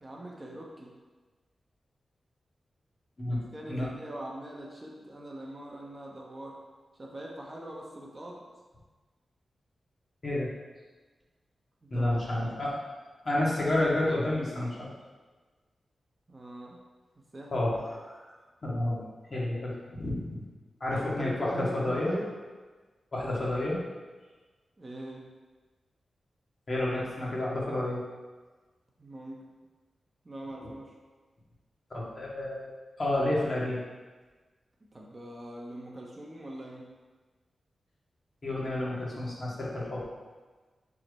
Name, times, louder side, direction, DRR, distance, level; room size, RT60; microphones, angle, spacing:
voice 1, 0.0-0.9 3.3-6.6 7.0-8.4 11.8-12.6 16.3-16.8 17.3-17.7 20.9-22.3 24.8-25.3 29.0-29.4 30.2-30.9 34.9-36.9, right 1 dB, 30° right, -2 dB, 0.9 m, -42 dB
voice 2, 11.9-12.8 13.2-14.9 17.5-18.2 18.6-19.0 19.3-20.4 20.8-22.2 23.1-23.8 26.7-28.0 31.9-32.7 33.0-33.8 38.4-40.0, left 1 dB, 40° left, -5 dB, 1.7 m, -30 dB
4.9 x 4.4 x 5.2 m, 1.3 s
wide cardioid pair, 110°, 0 cm